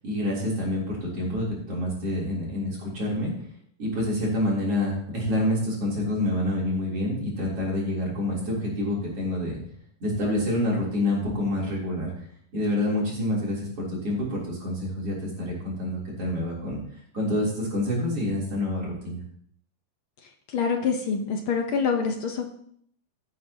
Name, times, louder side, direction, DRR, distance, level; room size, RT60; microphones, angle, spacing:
voice 1, 0.0-3.3 3.8-9.6 10.0-12.3 12.5-19.2, left 1 dB, 50° right, -4 dB, 4.3 m, -27 dB
voice 2, 20.5-22.5, left 5 dB, 65° left, 4 dB, 1.3 m, -26 dB
16.0 x 8.5 x 2.9 m, 0.65 s
omnidirectional pair, 3.5 m